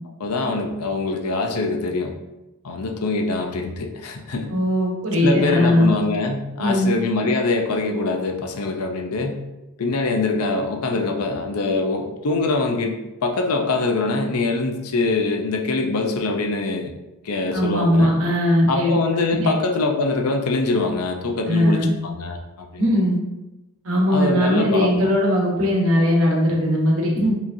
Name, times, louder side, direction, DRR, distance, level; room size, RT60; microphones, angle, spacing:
voice 1, 0.2-2.1 2.6-4.5 5.2-9.4 9.8-16.9 17.2-18.1 18.7-22.7 24.1-25.1, left 3 dB, 90° left, 3 dB, 0.6 m, -23 dB
voice 2, 4.5-6.0 6.6-6.9 17.5-19.5 21.5-21.9 22.8-23.2 23.8-27.3, equal, 65° right, -2 dB, 1.0 m, -19 dB
4.8 x 2.9 x 2.6 m, 0.99 s
head